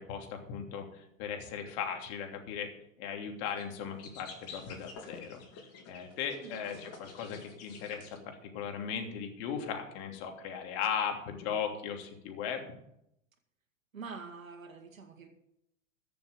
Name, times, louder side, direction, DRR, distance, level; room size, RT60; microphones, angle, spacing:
voice 1, 0.0-2.7 3.0-5.4 5.9-12.7, left 7 dB, 55° left, 3 dB, 3.2 m, -37 dB
sound 1, 3.5-3.6 4.0-8.2, left 5 dB, 40° left, 3.9 m, -49 dB
voice 2, 13.9-15.3, right 5 dB, 90° right, 3 dB, 2.0 m, -45 dB
14.5 x 7.1 x 7.9 m, 0.77 s
hypercardioid pair, 100°, 39 cm